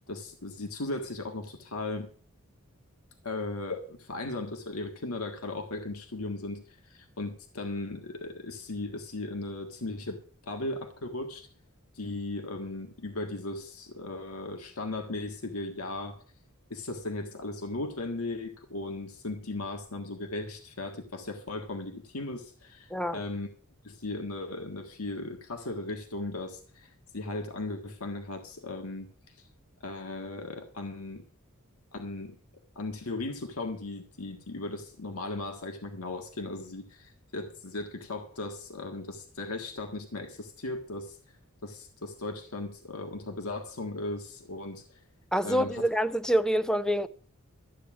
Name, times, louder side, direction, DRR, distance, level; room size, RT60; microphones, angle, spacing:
voice 1, 0.1-2.1 3.2-11.5 11.9-16.2 16.7-23.5 23.8-29.5 29.8-31.2 31.9-32.3 32.7-41.2 41.6-45.0 45.4-45.9, left 2 dB, 85° left, 1.6 m, -37 dB
voice 2, 22.9-23.2 45.3-47.1, equal, 5° left, 0.5 m, -26 dB
13.5 x 8.9 x 6.0 m
head